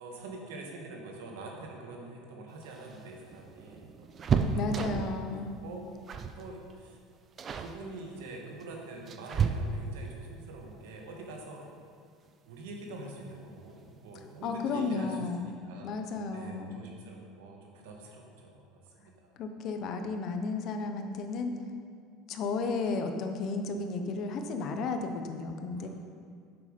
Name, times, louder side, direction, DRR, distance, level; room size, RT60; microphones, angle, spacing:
voice 1, 0.0-4.7 5.0-5.8 6.1-7.0 7.5-11.7 12.5-19.4 25.8-25.9, right 2 dB, 90° right, 0 dB, 1.7 m, -45 dB
sound 1, 2.6-5.3 6.1-6.4 6.7-7.0 7.4-7.8 8.6-10.1 11.8-11.9 12.3-12.4 13.6-14.0 14.3-14.4 14.7-14.9, right 5 dB, 35° right, 0.6 m, -32 dB
voice 2, 4.5-5.5 14.4-15.6 15.8-16.8 19.4-21.5 22.3-25.9, left 3 dB, 50° left, 6 dB, 0.9 m, -33 dB
8.1 x 6.8 x 5.2 m, 2.2 s
supercardioid pair, 125°, 0 cm